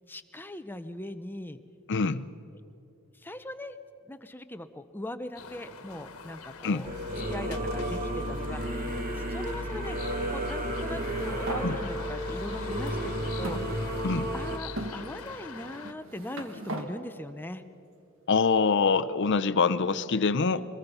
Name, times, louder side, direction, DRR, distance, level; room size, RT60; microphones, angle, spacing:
voice 1, 0.1-1.6 3.2-3.8 4.1-7.0 7.3-14.0 14.3-17.6, left 1 dB, 10° left, 10 dB, 0.7 m, -40 dB
voice 2, 1.9-2.2 6.6-6.9 11.6-11.8 14.0-14.3 18.3-20.7, left 4 dB, 55° left, 13 dB, 0.6 m, -25 dB
sound 1, 5.4-15.9, left 5 dB, 80° left, 1.4 m, -43 dB
Singing / Musical instrument, 6.8-14.6, right 1 dB, 40° right, 1.3 m, -32 dB
sound 2, 10.8-11.7 12.5-12.6 13.4-14.3 14.8-15.0 15.8-16.9, right 1 dB, 65° right, 1.9 m, -38 dB
23.5 x 22.0 x 5.6 m, 2.8 s
head